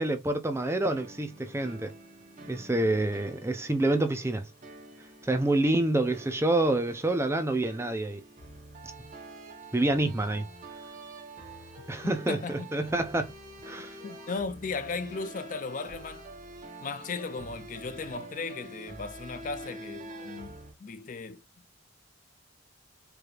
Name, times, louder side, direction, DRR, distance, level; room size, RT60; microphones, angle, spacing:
voice 1, 0.0-1.9 2.5-4.5 5.2-8.2 9.7-10.4 11.9-13.3 13.7-14.0, right 2 dB, 15° right, 0.5 m, -27 dB
sound 1, 0.9-20.7, right 2 dB, 40° right, 1.1 m, -47 dB
voice 2, 12.0-12.7 14.0-16.2 16.8-21.4, left 4 dB, 40° left, 0.4 m, -36 dB
4.7 x 3.2 x 2.4 m
head